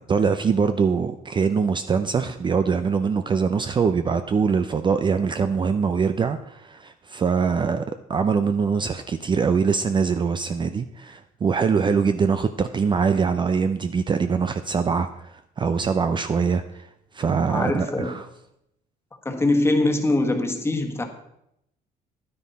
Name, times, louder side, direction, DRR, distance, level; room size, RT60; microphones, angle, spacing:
voice 1, 0.1-7.8 8.1-16.9 17.1-18.3, right 5 dB, 30° right, 0.5 m, -23 dB
voice 2, 17.5-18.2 19.2-21.0, left 2 dB, 15° left, 1.4 m, -23 dB
10.5 x 9.5 x 4.2 m
cardioid pair, 110°, 17 cm